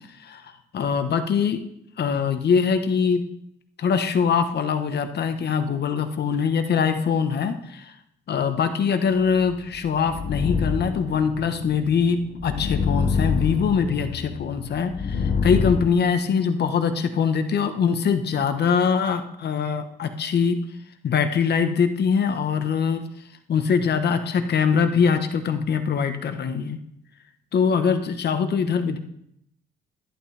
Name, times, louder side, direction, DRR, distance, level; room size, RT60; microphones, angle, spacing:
voice 1, 0.2-1.6 2.0-3.2 3.8-7.9 8.3-20.6 21.0-23.0 23.5-26.8 27.5-29.0, left 6 dB, 55° left, 8 dB, 1.2 m, -23 dB
sound 1, 9.4-15.9, left 5 dB, 40° left, 0.9 m, -27 dB
11.0 x 11.0 x 3.4 m, 0.77 s
cardioid pair, 90°, 20 cm